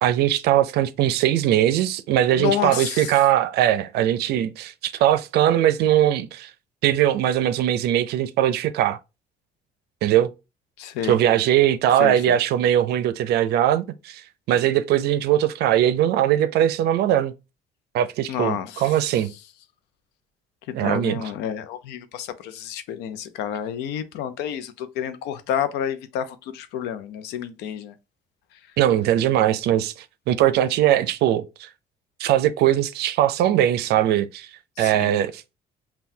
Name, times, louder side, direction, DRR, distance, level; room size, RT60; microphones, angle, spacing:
voice 1, 0.0-6.5 6.8-9.0 10.0-10.3 11.0-14.2 14.5-17.3 17.9-19.3 20.7-21.3 28.8-29.9 30.3-31.7 32.2-34.5 34.8-35.4, right 11 dB, 75° right, 0.5 m, -20 dB
voice 2, 2.3-3.1 10.8-11.2 12.0-12.4 18.3-18.9 20.7-27.9 34.8-35.1, left 9 dB, 90° left, 0.6 m, -29 dB
5.7 x 2.3 x 2.7 m
cardioid pair, 110°, 17 cm